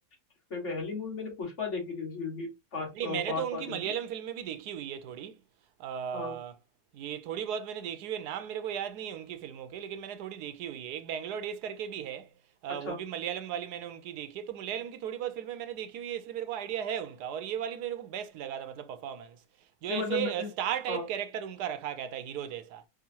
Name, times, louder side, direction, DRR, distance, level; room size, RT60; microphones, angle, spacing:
voice 1, 0.5-3.8 6.1-6.4 12.9-13.0 19.9-20.5 20.9-21.0, left 4 dB, 45° left, 2.1 m, -35 dB
voice 2, 2.9-5.4 5.8-6.5 6.9-12.3 12.6-19.4 19.8-22.8, right 9 dB, 85° right, 1.2 m, -36 dB
4.7 x 3.7 x 2.8 m
omnidirectional pair, 1.7 m